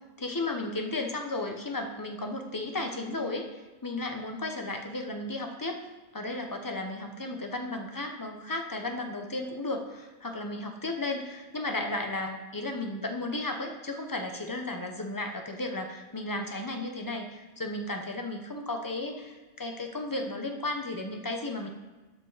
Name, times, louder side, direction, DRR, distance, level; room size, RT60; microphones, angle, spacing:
voice 1, 0.2-5.8 6.1-21.7, left 2 dB, 20° left, 4 dB, 0.7 m, -34 dB
12.5 x 5.4 x 4.0 m, 1.2 s
omnidirectional pair, 1.3 m